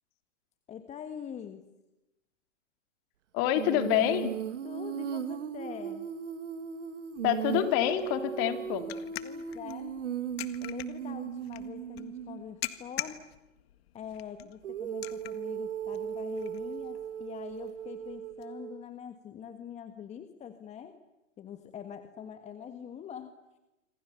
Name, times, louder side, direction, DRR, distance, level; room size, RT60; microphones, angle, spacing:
voice 1, 0.7-1.7 4.6-6.1 9.2-10.0 10.6-13.2 13.9-20.9 21.4-23.3, left 8 dB, 20° left, 8 dB, 1.5 m, -44 dB
voice 2, 3.3-4.3 7.2-8.8, left 12 dB, 35° left, 8 dB, 2.8 m, -27 dB
Female singing, 3.5-12.4 14.6-18.8, right 9 dB, 70° right, 2.0 m, -37 dB
sound 1, 7.2-18.5, left 14 dB, 55° left, 1.8 m, -45 dB
27.5 x 26.5 x 7.1 m, 0.97 s
hypercardioid pair, 130°, 37 cm